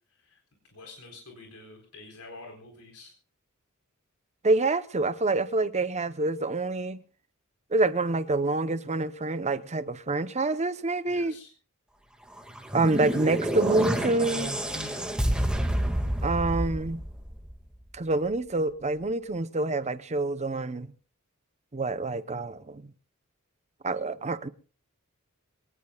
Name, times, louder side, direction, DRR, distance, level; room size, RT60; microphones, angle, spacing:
voice 1, 0.1-0.4 0.7-3.1 11.1-11.5 14.7-15.2, left 2 dB, 80° left, 4.0 m, -47 dB
voice 2, 4.4-7.0 7.7-11.3 12.7-14.5 16.2-17.0 17.9-20.9 21.7-22.9 23.8-24.5, right 2 dB, 30° right, 0.8 m, -27 dB
sound 1, 12.3-17.7, right 1 dB, 5° right, 2.0 m, -29 dB
24.5 x 18.5 x 2.4 m
head